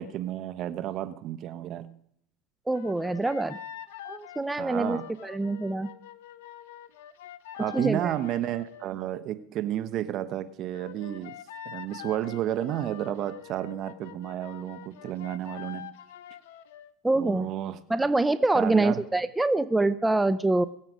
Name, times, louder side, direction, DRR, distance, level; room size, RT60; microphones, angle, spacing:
voice 1, 0.0-2.0 4.6-5.1 7.6-11.3 11.6-15.9 17.2-18.1 18.5-19.0, right 12 dB, 50° right, 12 dB, 1.0 m, -32 dB
sound 1, 2.7-8.9 10.7-16.9, left 11 dB, 75° left, 0.7 m, -45 dB
voice 2, 2.7-3.6 4.1-5.9 7.7-8.1 17.0-17.5 17.9-20.6, right 2 dB, 10° right, 12 dB, 0.5 m, -25 dB
22.0 x 7.8 x 5.0 m, 0.71 s
hypercardioid pair, 90°, 0 cm